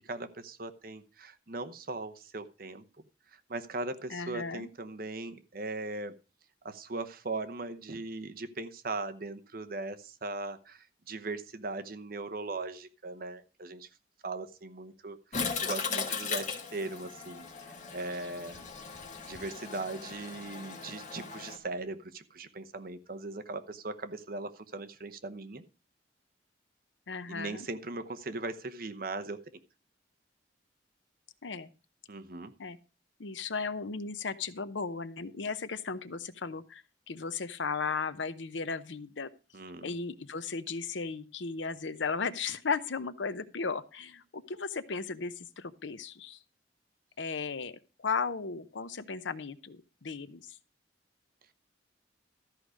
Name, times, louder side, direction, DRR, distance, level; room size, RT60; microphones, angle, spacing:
voice 1, 0.0-2.8 3.3-6.1 6.6-13.9 14.2-18.7 19.2-25.6 27.3-29.4 32.1-32.5 39.5-39.9, right 2 dB, 50° right, 9 dB, 0.9 m, -39 dB
voice 2, 4.1-4.7 27.1-27.7 31.4-31.7 32.6-32.8 33.2-39.3 39.8-46.4 47.2-50.6, left 5 dB, 90° left, 13 dB, 0.8 m, -36 dB
Toilet flush, 15.3-21.6, left 5 dB, 40° left, 1.7 m, -38 dB
13.5 x 4.9 x 6.4 m, 0.33 s
head